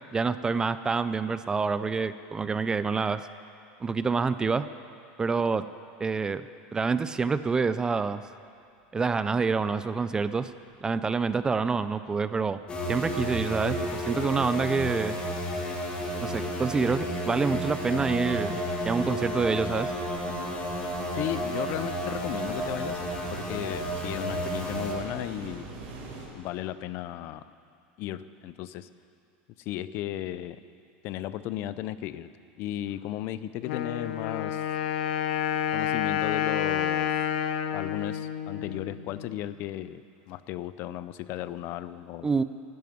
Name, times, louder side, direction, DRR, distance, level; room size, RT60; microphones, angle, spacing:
voice 1, 0.1-3.3 3.8-4.7 5.2-5.6 6.0-6.4 6.7-8.2 8.9-10.5 10.8-12.6 12.9-15.2 16.2-19.9 42.2-42.4, right 4 dB, 15° right, 13 dB, 0.4 m, -27 dB
sound 1, 10.5-11.0 11.3-26.3, right 3 dB, 65° right, 4.2 m, -46 dB
sound 2, 12.7-24.9, equal, 20° left, 2.2 m, -32 dB
voice 2, 21.2-23.0 23.3-25.7 26.3-27.4 28.0-28.9 29.6-30.6 31.0-32.3 32.6-34.6 35.7-37.1 37.7-40.0 40.3-42.3, left 13 dB, 50° left, 14 dB, 0.6 m, -35 dB
Wind instrument woodwind instrument, 33.6-39.4, left 9 dB, 80° left, 0.8 m, -29 dB
12.0 x 11.0 x 9.4 m, 2.4 s
supercardioid pair, 145°, 5 cm